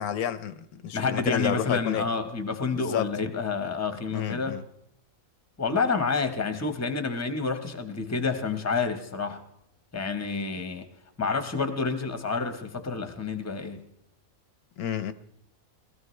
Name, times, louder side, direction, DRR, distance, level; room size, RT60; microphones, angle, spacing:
voice 1, 0.0-2.0 2.7-3.1 4.1-4.6 14.8-15.1, left 9 dB, 85° left, 1.2 m, -30 dB
voice 2, 0.9-4.6 5.6-9.4 9.9-10.8 11.2-13.8, left 4 dB, 15° left, 0.9 m, -29 dB
20.5 x 14.0 x 3.2 m
omnidirectional pair, 1.5 m